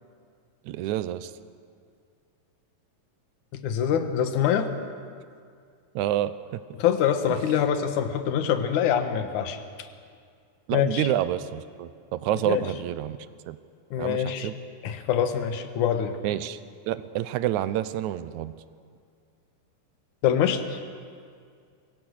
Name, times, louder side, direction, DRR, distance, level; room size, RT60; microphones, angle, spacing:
voice 1, 0.6-1.3 6.0-6.6 10.7-13.2 13.5-13.6 14.0-14.6 16.2-16.6 16.9-18.5, right 12 dB, 75° right, 14 dB, 1.9 m, -28 dB
voice 2, 3.6-4.7 6.8-9.6 10.7-11.1 12.5-12.6 13.9-14.5 14.8-16.2 20.2-20.6, left 9 dB, 65° left, 7 dB, 2.6 m, -24 dB
26.5 x 23.0 x 6.5 m, 2.2 s
omnidirectional pair, 3.9 m